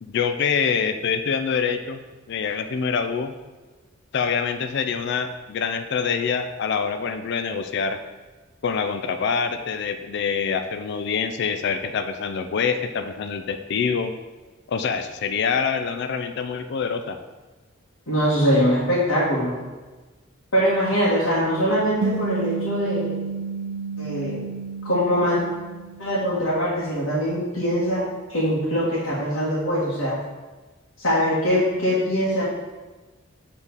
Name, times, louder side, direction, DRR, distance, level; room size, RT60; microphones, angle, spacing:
voice 1, 0.0-2.0 2.3-3.3 4.1-8.0 8.6-14.1 14.7-17.2, left 6 dB, 60° left, 8 dB, 0.4 m, -25 dB
voice 2, 18.1-19.5 20.5-23.1 24.0-24.4 24.8-25.4 26.0-28.0 28.3-30.2 31.0-32.4, equal, 85° left, -9 dB, 1.7 m, -22 dB
sound 1, 22.0-26.7, right 4 dB, 80° right, 0.7 m, -31 dB
6.9 x 3.7 x 4.1 m, 1.3 s
head